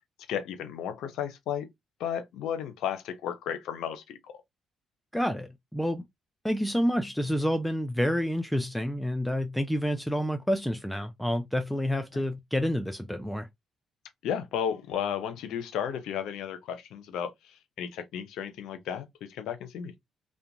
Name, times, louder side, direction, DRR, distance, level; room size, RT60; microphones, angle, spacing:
voice 1, 0.3-1.7 2.0-4.3 12.1-12.2 14.2-19.9, left 8 dB, 85° left, 0.6 m, -34 dB
voice 2, 5.1-6.0 6.4-13.5, equal, 5° left, 0.4 m, -28 dB
2.4 x 2.1 x 2.8 m
supercardioid pair, 70°, 0 cm